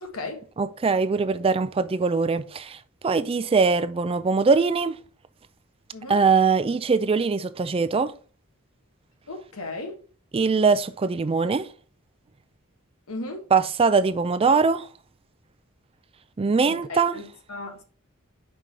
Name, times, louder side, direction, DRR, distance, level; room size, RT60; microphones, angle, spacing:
voice 1, 0.0-0.4 5.9-6.2 9.3-10.0 13.1-13.5 16.7-17.8, left 2 dB, 80° left, 1.6 m, -36 dB
voice 2, 0.6-5.0 6.1-8.1 10.3-11.7 13.5-14.9 16.4-17.2, right 4 dB, 25° right, 0.4 m, -22 dB
5.3 x 4.8 x 4.2 m
head